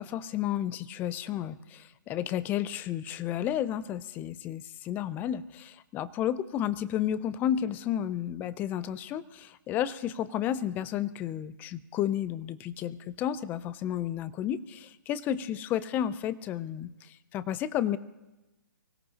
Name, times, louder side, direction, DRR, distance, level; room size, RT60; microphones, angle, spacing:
voice 1, 0.0-18.0, left 10 dB, 15° left, 17 dB, 0.4 m, -32 dB
24.5 x 16.5 x 2.8 m, 1.1 s
hypercardioid pair, 140°, 11 cm